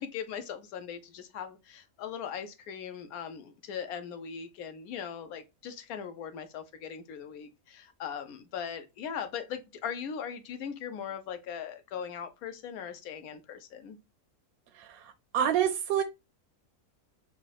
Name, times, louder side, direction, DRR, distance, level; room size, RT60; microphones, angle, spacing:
voice 1, 0.0-14.0, left 7 dB, 80° left, 1.1 m, -39 dB
voice 2, 14.7-16.0, right 9 dB, 80° right, 1.1 m, -28 dB
5.9 x 2.1 x 2.2 m
omnidirectional pair, 1.5 m